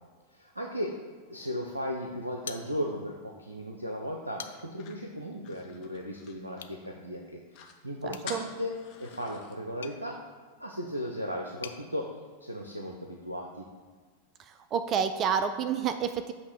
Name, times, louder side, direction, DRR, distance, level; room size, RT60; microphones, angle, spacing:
voice 1, 0.3-0.9 1.3-7.4 7.8-10.2 10.6-12.1 12.4-13.6, equal, 85° right, 1 dB, 0.6 m, -36 dB
sound 1, 2.4-3.2 3.6-3.7 4.2-4.9 6.5-6.8 8.1-11.8, left 7 dB, 65° left, 0.4 m, -47 dB
sound 2, 4.5-6.9 7.2-7.3 7.5-7.8 8.2-9.6, left 7 dB, 40° left, 0.8 m, -47 dB
voice 2, 8.0-8.4 14.7-16.3, right 7 dB, 30° right, 10 dB, 0.3 m, -29 dB
8.0 x 2.9 x 6.1 m, 1.5 s
figure-of-eight pair, 90°, 0 cm